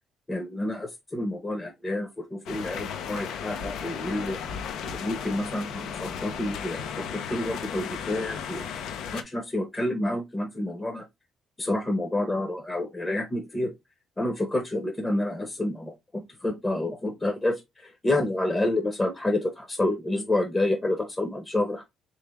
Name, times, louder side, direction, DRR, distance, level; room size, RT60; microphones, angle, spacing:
voice 1, 0.3-4.4 4.8-8.7 9.1-11.1 11.6-13.7 14.2-21.8, left 1 dB, 15° left, 0.8 m, -29 dB
sound 1, 2.5-9.2, left 7 dB, 80° left, 0.6 m, -35 dB
3.5 x 3.2 x 3.4 m
cardioid pair, 115°, 0 cm